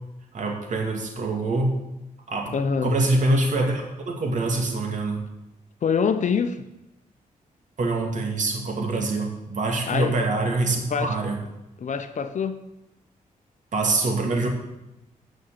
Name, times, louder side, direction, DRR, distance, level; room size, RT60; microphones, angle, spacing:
voice 1, 0.3-1.7 2.3-2.5 2.8-5.2 7.8-11.4 13.7-14.5, right 2 dB, 60° right, 2 dB, 2.5 m, -24 dB
voice 2, 2.5-2.9 5.8-6.6 9.9-10.2 10.9-11.2 11.8-12.6, left 6 dB, 60° left, 10 dB, 0.9 m, -25 dB
9.2 x 6.4 x 7.7 m, 0.92 s
cardioid pair, 85°, 14 cm